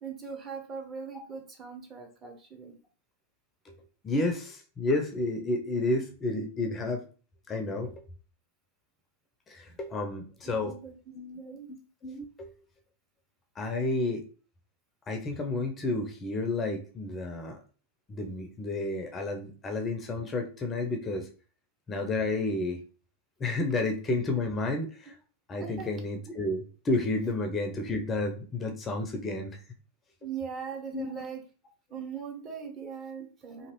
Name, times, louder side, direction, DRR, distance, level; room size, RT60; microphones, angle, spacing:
voice 1, 0.0-2.7 9.7-9.8 10.4-10.9 11.4-11.7 25.6-25.9 30.2-31.4 31.9-33.7, right 6 dB, 30° right, 2 dB, 0.8 m, -40 dB
voice 2, 4.0-7.0 7.5-8.1 9.5-10.8 11.1-12.6 13.6-14.2 15.1-17.6 18.1-21.3 21.9-22.8 23.4-25.1 25.5-29.6 30.9-31.2, left 2 dB, 20° left, 4 dB, 0.5 m, -31 dB
2.9 x 2.5 x 2.9 m, 0.37 s
figure-of-eight pair, 90°, 0 cm